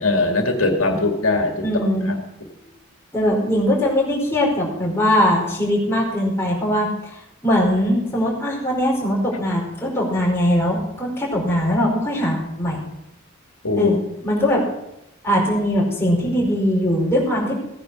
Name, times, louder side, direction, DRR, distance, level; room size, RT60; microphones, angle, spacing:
voice 1, 0.0-1.6 2.1-2.2 13.6-13.9, left 2 dB, 90° left, 3 dB, 2.1 m, -20 dB
voice 2, 1.6-2.1 3.1-12.8 13.8-14.6 15.2-17.5, equal, 10° left, -4 dB, 4.8 m, -21 dB
16.5 x 9.7 x 6.2 m, 0.85 s
head